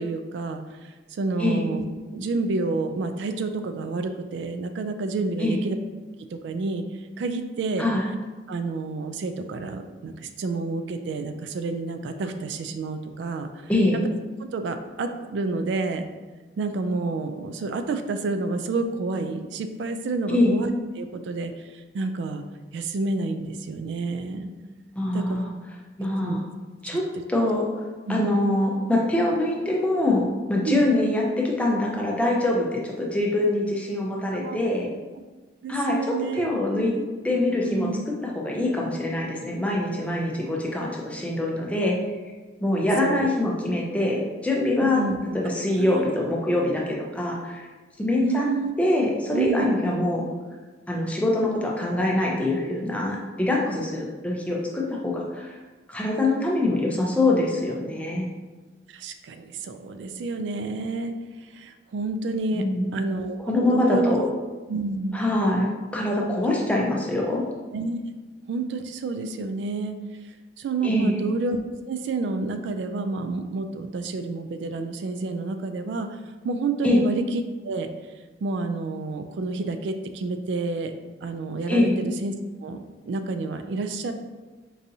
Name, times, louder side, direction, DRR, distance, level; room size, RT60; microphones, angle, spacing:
voice 1, 0.0-1.8 2.1-5.8 6.4-6.8 7.2-7.9 8.5-13.5 13.9-14.0 14.4-16.1 16.6-20.7 21.0-22.4 22.7-24.5 25.1-25.4 26.2-26.4 28.1-28.2 30.6-30.8 34.3-34.6 35.6-36.5 36.7-37.0 37.6-38.0 43.0-43.3 44.8-45.2 45.6-46.0 48.2-48.7 49.3-50.0 58.9-61.1 61.5-62.6 62.9-64.1 64.7-65.2 67.7-68.0 68.5-70.0 70.6-71.6 71.9-76.1 76.4-77.9 78.4-80.9 81.2-82.3 82.6-84.1, right 3 dB, 80° right, 8 dB, 0.3 m, -29 dB
voice 2, 13.7-14.0 20.3-20.5 25.0-25.5 26.0-26.4 26.8-27.0 27.3-27.6 28.1-34.9 35.7-36.9 37.2-37.9 38.2-42.0 42.6-45.0 45.3-47.7 48.0-48.5 48.8-50.3 50.9-55.6 55.9-58.3 62.5-63.0 63.5-64.3 65.1-67.4 70.8-71.2 76.8-77.0 81.7-81.9, left 1 dB, 10° left, -2 dB, 0.5 m, -24 dB
4.6 x 2.6 x 2.7 m, 1.3 s
head